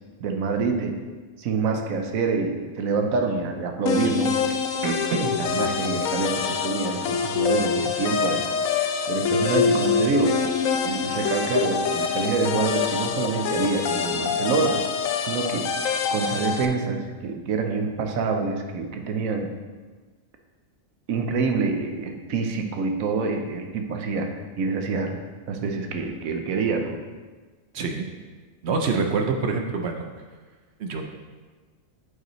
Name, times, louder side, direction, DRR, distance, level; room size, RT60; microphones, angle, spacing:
voice 1, 0.2-1.0 1.4-4.5 4.8-8.4 9.1-10.4 10.8-14.8 15.3-15.7 16.1-19.5 21.1-24.3 24.6-25.2 25.5-27.0, right 4 dB, 90° right, 4 dB, 1.2 m, -26 dB
sound 1, 3.9-16.7, left 6 dB, 85° left, 1.0 m, -25 dB
voice 2, 27.7-28.1 28.6-30.0 30.8-31.0, right 4 dB, 60° right, 3 dB, 0.8 m, -25 dB
7.9 x 5.2 x 3.1 m, 1.4 s
omnidirectional pair, 1.4 m